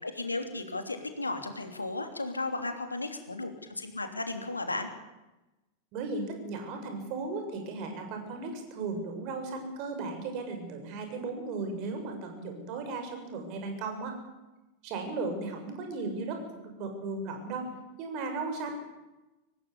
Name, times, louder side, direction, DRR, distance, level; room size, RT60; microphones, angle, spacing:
voice 1, 0.0-4.9, left 2 dB, 80° left, 7 dB, 3.1 m, -35 dB
voice 2, 5.9-14.2 14.8-17.7 18.0-18.8, right 3 dB, 40° right, 5 dB, 6.9 m, -36 dB
25.5 x 18.5 x 8.6 m, 1.0 s
figure-of-eight pair, 90°, 0 cm